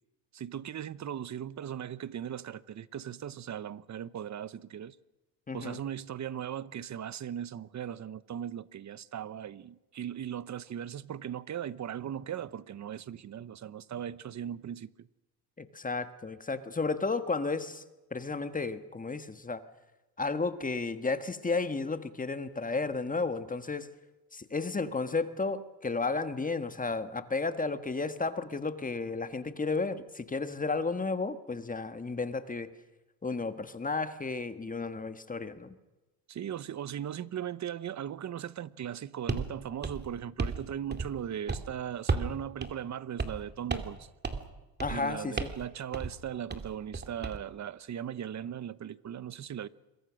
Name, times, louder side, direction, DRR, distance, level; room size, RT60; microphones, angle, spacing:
voice 1, 0.3-5.0 5.5-15.1 36.3-44.1 44.9-49.7, right 9 dB, 40° right, 0.9 m, -38 dB
voice 2, 5.5-5.8 15.6-17.8 18.1-19.6 20.2-23.9 24.3-32.7 33.2-35.7 44.8-45.5, left 3 dB, 20° left, 1.5 m, -33 dB
sound 1, 39.3-39.5 39.8-40.6 40.9-41.2 41.5-41.7 42.1-42.3 42.6-42.7 43.2-43.4 43.7-44.0 44.2-44.5 44.8-45.0 45.4-45.6 45.9-46.1 46.5-47.4, right 4 dB, 25° right, 2.3 m, -33 dB
27.0 x 22.5 x 6.3 m
cardioid pair, 105°, 42 cm